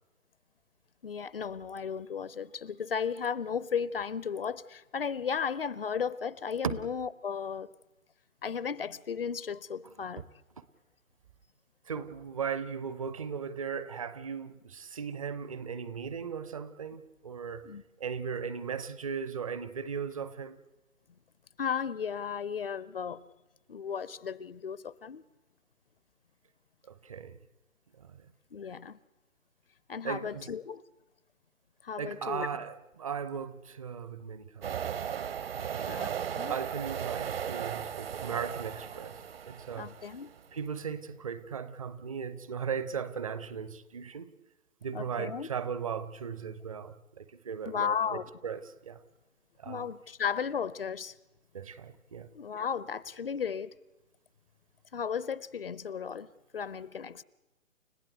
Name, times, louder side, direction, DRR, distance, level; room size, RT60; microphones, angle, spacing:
voice 1, 1.0-7.7 8.4-10.2 17.6-17.8 21.6-23.2 23.7-25.2 28.5-29.0 29.9-30.8 31.8-32.5 35.5-36.6 39.8-40.3 44.9-45.5 47.7-48.3 49.6-51.2 52.3-53.7 54.9-57.2, left 7 dB, 45° left, 0.7 m, -35 dB
voice 2, 11.9-17.7 18.0-20.6 26.9-27.4 28.0-28.2 30.0-30.5 32.0-35.0 35.6-36.2 36.5-39.2 39.5-39.9 40.5-44.3 44.8-48.0 48.4-49.0 49.6-49.9 51.5-52.3, right 6 dB, 25° right, 0.7 m, -37 dB
sound 1, 34.6-40.4, right 8 dB, 45° right, 1.0 m, -36 dB
30.0 x 15.0 x 7.9 m
figure-of-eight pair, 135°, 40 cm